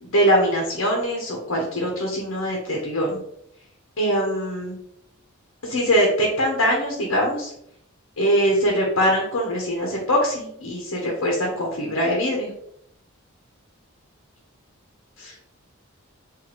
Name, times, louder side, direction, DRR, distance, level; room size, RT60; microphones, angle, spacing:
voice 1, 0.0-3.2 4.0-4.8 5.6-7.5 8.2-12.5 15.2-15.3, equal, 75° left, -1 dB, 0.9 m, -22 dB
4.0 x 2.6 x 3.0 m, 0.72 s
head